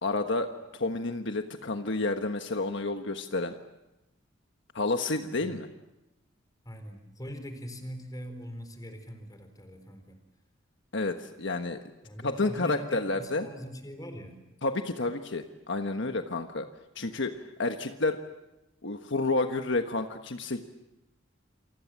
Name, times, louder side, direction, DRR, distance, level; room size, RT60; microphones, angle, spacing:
voice 1, 0.0-3.5 4.7-5.7 10.9-11.8 12.2-13.5 14.6-16.7 16.9-18.2 18.8-20.6, left 3 dB, 65° left, 6 dB, 1.4 m, -30 dB
voice 2, 6.6-10.2 12.0-14.4, equal, 20° left, 7 dB, 4.2 m, -42 dB
28.5 x 25.5 x 7.5 m, 0.92 s
head